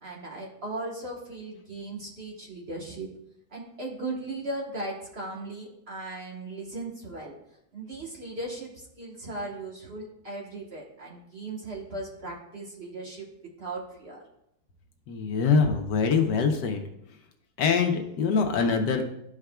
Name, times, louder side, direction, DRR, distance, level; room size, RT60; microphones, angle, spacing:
voice 1, 0.0-3.1 3.5-7.3 7.7-13.3 13.6-14.2, right 2 dB, 40° right, -2 dB, 1.3 m, -37 dB
voice 2, 15.1-16.8 17.6-19.0, left 5 dB, 75° left, 4 dB, 1.4 m, -24 dB
12.5 x 4.8 x 2.3 m, 0.80 s
omnidirectional pair, 1.9 m